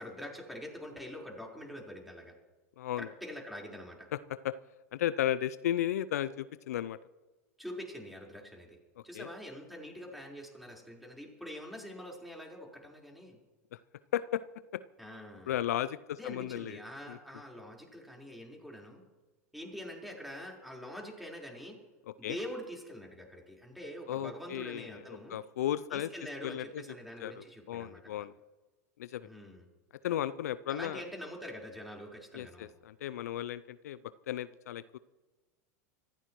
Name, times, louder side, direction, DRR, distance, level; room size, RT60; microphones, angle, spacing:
voice 1, 0.0-2.3 3.0-4.1 7.6-8.8 9.0-13.4 15.0-15.5 16.2-19.0 19.5-21.8 22.2-25.4 25.9-28.3 29.2-29.7 30.7-32.7, equal, ahead, -1 dB, 4.5 m, -45 dB
voice 2, 2.8-3.1 4.4-4.5 4.9-7.0 9.1-9.3 13.7-13.8 14.1-14.4 15.5-16.8 17.1-17.2 22.2-22.4 24.1-26.1 26.4-26.8 27.2-28.3 29.0-29.3 30.0-31.0 32.3-34.0 34.3-35.0, left 11 dB, 70° left, 16 dB, 0.5 m, -34 dB
25.5 x 14.5 x 3.1 m, 1.2 s
hypercardioid pair, 95°, 9 cm